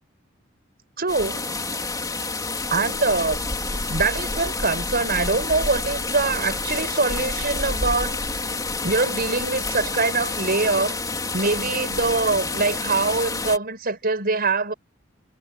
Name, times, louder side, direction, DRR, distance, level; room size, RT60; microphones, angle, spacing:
voice 1, 1.0-1.5 2.7-8.6 8.8-11.0 11.3-14.7, right 3 dB, 50° right, 5.3 m, -24 dB
sound 1, 1.1-13.6, left 3 dB, 20° left, 3.7 m, -28 dB
head